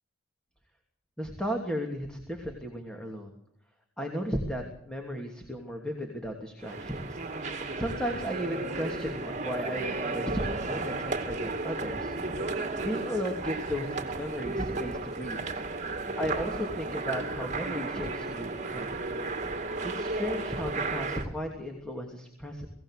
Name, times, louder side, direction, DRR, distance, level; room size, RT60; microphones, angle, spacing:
voice 1, 1.2-3.3 4.0-7.2 7.8-12.1 12.8-15.4 16.2-18.9 19.8-22.7, equal, 5° left, 1 dB, 2.9 m, -35 dB
sound 1, 6.6-21.3, right 3 dB, 35° right, 2.4 m, -34 dB
24.5 x 17.5 x 6.6 m, 0.75 s
head